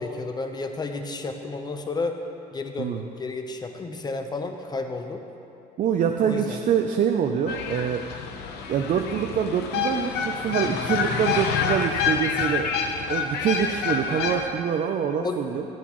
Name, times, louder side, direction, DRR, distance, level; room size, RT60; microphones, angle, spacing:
voice 1, 0.0-2.2 2.5-5.2 6.2-6.6 15.2-15.4, left 3 dB, 25° left, 5 dB, 0.8 m, -31 dB
voice 2, 5.8-8.0 8.7-12.7 13.1-15.7, right 8 dB, 50° right, 4 dB, 0.6 m, -25 dB
sound 1, 7.5-14.5, left 6 dB, 80° left, 0.9 m, -27 dB
15.0 x 9.2 x 3.1 m, 2.8 s
cardioid pair, 110°, 17 cm